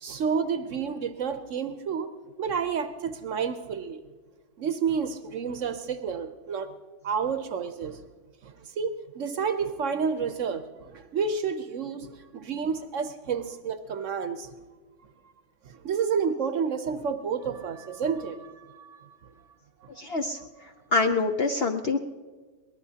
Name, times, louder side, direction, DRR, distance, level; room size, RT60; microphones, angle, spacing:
voice 1, 0.0-2.1 2.4-4.0 4.6-6.7 7.0-8.0 8.4-14.5 15.6-19.2 19.8-19.9 20.4-20.5, right 6 dB, 60° right, 9 dB, 1.0 m, -30 dB
voice 2, 20.0-20.4 20.9-22.0, left 3 dB, 55° left, 4 dB, 0.7 m, -25 dB
22.5 x 19.0 x 2.8 m, 1.4 s
omnidirectional pair, 1.6 m